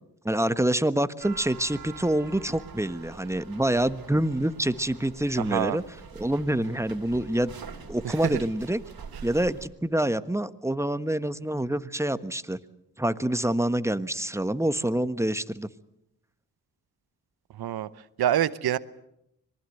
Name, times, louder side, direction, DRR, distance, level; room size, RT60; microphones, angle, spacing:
voice 1, 0.2-5.8 6.1-7.5 7.9-8.8 9.2-12.6 13.0-15.7, right 1 dB, 5° right, 13 dB, 1.3 m, -26 dB
sound 1, 1.2-9.7, right 6 dB, 70° right, 3.0 m, -45 dB
voice 2, 5.4-5.8 8.0-8.4 17.5-17.9 18.2-18.8, right 11 dB, 90° right, 16 dB, 0.9 m, -26 dB
26.0 x 20.0 x 7.9 m, 0.79 s
cardioid pair, 45°, 37 cm